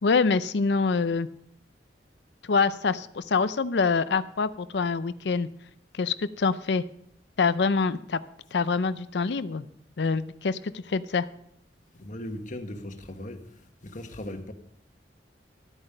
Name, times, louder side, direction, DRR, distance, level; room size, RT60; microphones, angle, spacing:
voice 1, 0.0-1.3 2.5-5.5 5.9-6.8 7.4-8.2 8.5-9.7 10.0-11.3, left 4 dB, 70° left, 0.5 m, -25 dB
voice 2, 11.9-13.5 13.8-14.5, left 1 dB, 45° left, 1.3 m, -38 dB
12.5 x 8.9 x 5.4 m
head